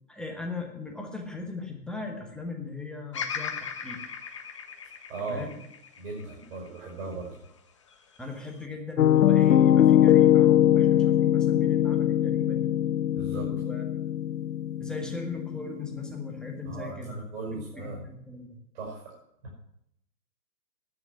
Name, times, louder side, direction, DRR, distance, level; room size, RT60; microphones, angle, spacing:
voice 1, 0.1-4.0 5.3-5.6 8.2-12.8 13.5-13.8 14.8-17.2 17.5-18.6, left 3 dB, ahead, 1 dB, 1.2 m, -38 dB
Bird vocalization bird call bird song, 3.1-7.4 7.9-8.7, left 6 dB, 20° left, 0.5 m, -38 dB
voice 2, 4.8-5.5 6.0-7.4 13.1-13.5 16.6-18.1 18.7-19.5, right 3 dB, 45° right, -2 dB, 5.8 m, -38 dB
Piano, 9.0-16.8, left 11 dB, 65° left, 0.6 m, -22 dB
10.5 x 9.5 x 5.9 m, 0.75 s
figure-of-eight pair, 120°, 50 cm